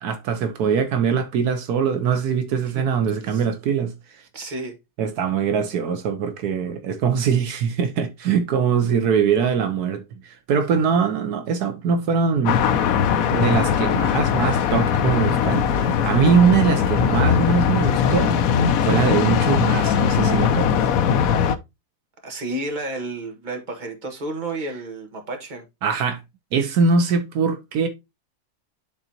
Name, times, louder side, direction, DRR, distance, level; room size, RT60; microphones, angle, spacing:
voice 1, 0.0-4.2 5.0-12.6 13.3-20.9 25.8-26.2 26.5-27.9, right 6 dB, 75° right, 1.3 m, -22 dB
voice 2, 4.3-4.8 22.2-25.6, right 2 dB, 30° right, 1.5 m, -31 dB
sound 1, 12.5-21.6, left 7 dB, 70° left, 1.0 m, -20 dB
11.0 x 4.0 x 2.8 m
omnidirectional pair, 1.7 m